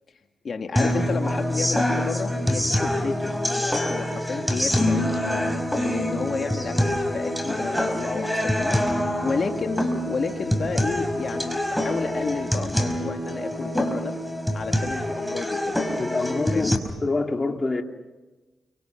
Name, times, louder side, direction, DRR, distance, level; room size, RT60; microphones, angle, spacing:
voice 1, 0.4-5.3 5.8-6.8 7.1-14.1 14.5-15.8 16.5-16.8, left 4 dB, 55° left, 2.1 m, -31 dB
sound 1, 0.8-16.8, left 1 dB, ahead, 5.0 m, -25 dB
voice 2, 16.0-17.8, left 3 dB, 30° left, 2.7 m, -26 dB
29.5 x 25.5 x 6.0 m
cardioid pair, 60°, 0 cm